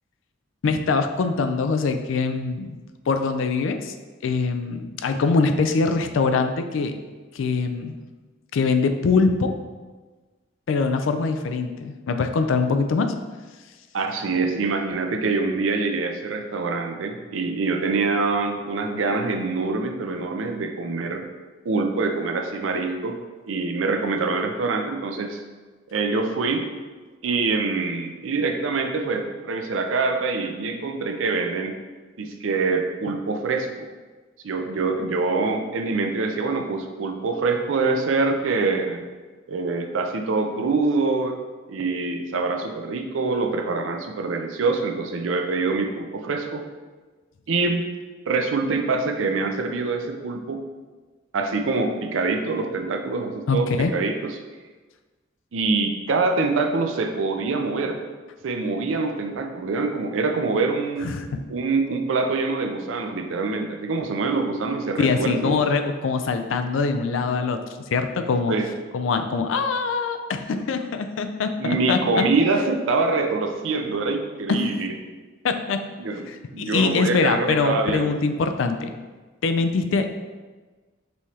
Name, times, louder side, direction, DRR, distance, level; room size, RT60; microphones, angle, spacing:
voice 1, 0.6-2.8 3.1-3.9 4.2-6.9 7.3-8.0 8.5-9.5 10.7-13.1 53.5-53.9 61.0-61.3 65.0-67.6 67.9-68.5 68.9-72.2 74.5-74.7 75.4-75.8 76.3-78.9 79.4-80.1, left 4 dB, 75° left, 8 dB, 0.4 m, -23 dB
voice 2, 13.9-21.2 21.6-23.2 23.5-25.4 25.9-26.7 27.2-31.8 32.2-33.9 34.4-39.0 39.5-41.4 41.7-46.6 47.5-47.8 48.3-50.6 51.3-54.4 55.5-58.0 58.4-61.1 61.5-65.6 68.5-68.7 71.6-74.9 76.0-76.2 76.5-78.2, right 3 dB, 90° right, 4 dB, 0.5 m, -25 dB
5.5 x 2.8 x 3.1 m, 1.3 s
head